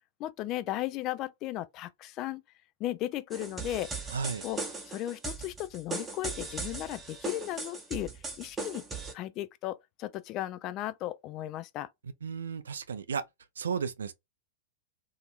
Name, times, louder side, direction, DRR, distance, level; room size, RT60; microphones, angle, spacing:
voice 1, 0.2-2.4 2.8-3.9 4.4-4.6 4.9-8.1 8.4-8.8 9.1-11.9, left 14 dB, 35° left, 0.3 m, -35 dB
sound 1, 3.3-9.1, right 3 dB, 15° right, 0.7 m, -38 dB
voice 2, 4.1-4.4 12.2-13.2 13.6-14.1, right 6 dB, 70° right, 0.4 m, -33 dB
2.8 x 2.6 x 2.4 m
figure-of-eight pair, 100°, 0 cm